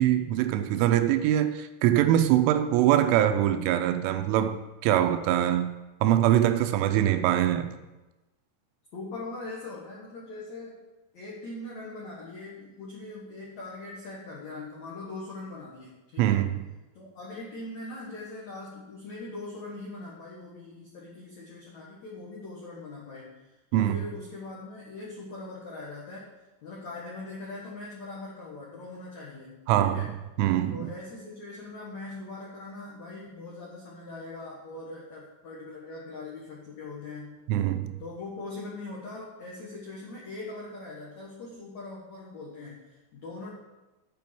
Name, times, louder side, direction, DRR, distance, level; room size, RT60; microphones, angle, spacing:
voice 1, 0.0-4.6 4.8-5.7 6.0-7.7 16.2-16.6 23.7-24.0 29.7-30.1 30.4-30.9 37.5-38.0, right 12 dB, 85° right, 9 dB, 3.0 m, -23 dB
voice 2, 8.9-10.8 11.1-16.4 16.9-26.3 26.6-30.1 30.7-37.4 38.0-43.5, left 2 dB, 80° left, -5 dB, 1.6 m, -41 dB
9.2 x 5.2 x 6.9 m, 1.1 s
omnidirectional pair, 5.7 m